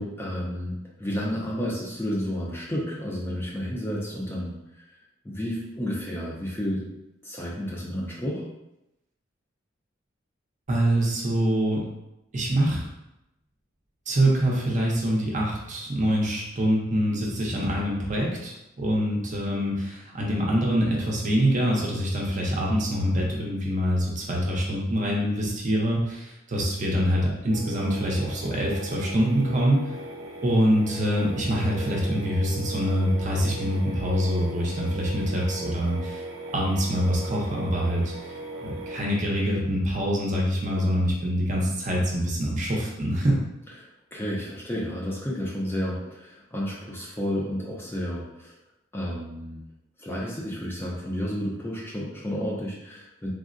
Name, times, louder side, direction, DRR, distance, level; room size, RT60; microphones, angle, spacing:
voice 1, 0.0-4.8 5.2-6.9 7.2-8.5 43.8-48.5 48.9-49.6 50.0-53.3, equal, 10° left, -4 dB, 0.5 m, -31 dB
voice 2, 10.7-11.9 12.3-12.9 14.1-29.8 30.4-36.2 36.5-38.1 38.6-43.4, equal, 40° right, -2 dB, 0.6 m, -25 dB
sound 1, 27.5-39.0, right 1 dB, 85° right, 0.6 m, -38 dB
3.5 x 2.1 x 2.5 m, 0.90 s
head